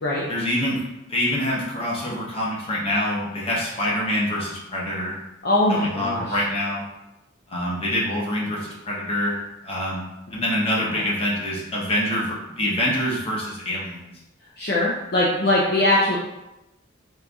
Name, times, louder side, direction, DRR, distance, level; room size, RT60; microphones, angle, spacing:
voice 1, 0.3-5.1 5.7-6.8 7.5-9.3 9.6-14.1, left 1 dB, 30° left, -5 dB, 1.0 m, -26 dB
voice 2, 5.4-6.3 14.6-16.2, left 1 dB, 50° left, -4 dB, 0.6 m, -21 dB
4.4 x 2.5 x 3.5 m, 0.92 s
head